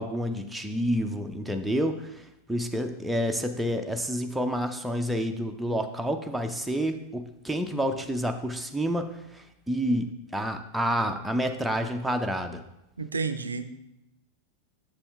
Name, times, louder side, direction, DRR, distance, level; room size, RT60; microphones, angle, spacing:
voice 1, 0.0-12.6, equal, 5° right, 4 dB, 0.6 m, -29 dB
voice 2, 13.0-13.7, right 4 dB, 75° right, 11 dB, 0.5 m, -30 dB
7.0 x 7.0 x 3.5 m, 0.86 s
figure-of-eight pair, 90°, 0 cm